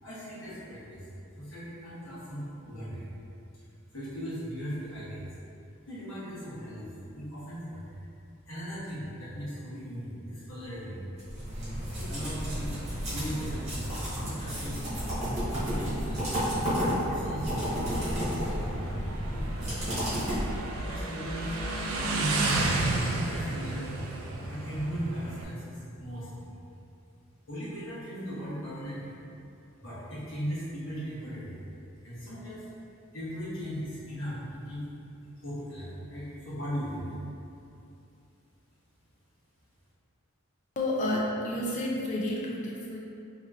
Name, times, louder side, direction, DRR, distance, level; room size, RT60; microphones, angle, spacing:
voice 1, 0.0-1.1 1.4-3.1 3.9-5.3 5.8-8.0 8.4-11.0 11.9-12.8 13.1-13.6 14.2-15.0 15.6-19.0 19.3-20.0 20.8-21.5 21.9-22.9 23.2-24.1 24.5-26.5 27.5-29.1 29.8-31.5 32.0-32.7 33.1-34.9 35.4-37.1, equal, 65° left, -12 dB, 1.3 m, -38 dB
sound 1, 11.2-20.9, equal, 30° right, 0.9 m, -32 dB
Motorcycle, 12.5-25.4, right 2 dB, 75° right, 0.3 m, -34 dB
voice 2, 40.8-43.0, left 1 dB, 35° left, -3 dB, 0.4 m, -30 dB
3.0 x 2.8 x 2.4 m, 2.6 s
head